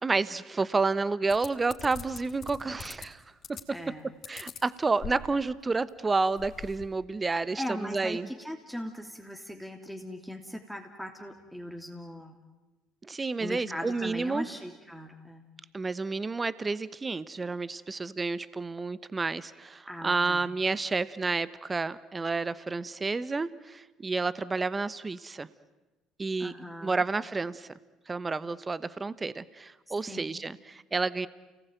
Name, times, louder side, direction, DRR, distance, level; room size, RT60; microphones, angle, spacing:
voice 1, 0.0-3.2 4.3-8.3 13.0-14.5 15.7-25.5 26.2-26.5 26.8-27.7 28.1-31.3, right 3 dB, 25° right, 17 dB, 1.0 m, -30 dB
sound 1, 1.3-3.1 3.4-3.9 4.2-5.5 5.9-6.0 6.2-6.9, left 6 dB, 50° left, 4.1 m, -43 dB
voice 2, 3.7-4.0 7.3-12.4 13.4-15.4 19.9-20.5 26.4-27.0 29.9-30.4, equal, ahead, 3 dB, 2.9 m, -39 dB
29.5 x 19.0 x 9.2 m, 1.1 s
hypercardioid pair, 65°, 0 cm